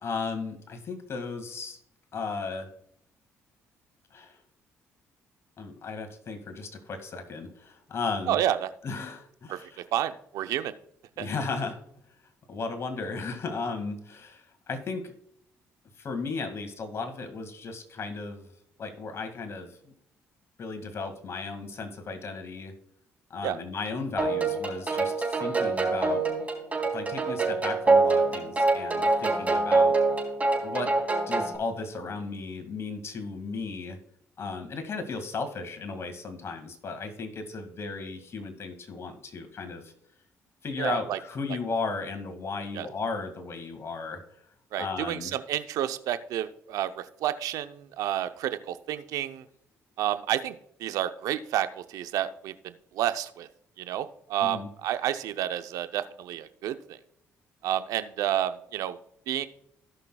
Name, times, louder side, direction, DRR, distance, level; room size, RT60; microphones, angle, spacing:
voice 1, 0.0-1.8 2.1-2.7 4.1-4.4 5.6-8.4 8.8-9.8 11.2-11.8 12.5-15.0 16.0-18.5 18.8-19.9 20.6-22.7 23.3-26.3 26.9-30.0 30.6-30.9 31.3-34.0 34.4-39.9 40.6-44.2 44.8-45.3 54.4-54.7, left 4 dB, 50° left, 6 dB, 2.0 m, -35 dB
voice 2, 8.3-8.7 9.5-9.6 9.9-10.7 11.2-11.3 23.4-23.6 40.8-41.2 42.7-42.9 44.7-49.4 50.0-53.5 53.8-56.8 57.6-59.0 59.3-59.4, right 11 dB, 75° right, 11 dB, 0.7 m, -30 dB
sound 1, 24.2-31.6, right 3 dB, 25° right, 3.6 m, -25 dB
17.0 x 5.8 x 2.3 m, 0.70 s
supercardioid pair, 65°, 6 cm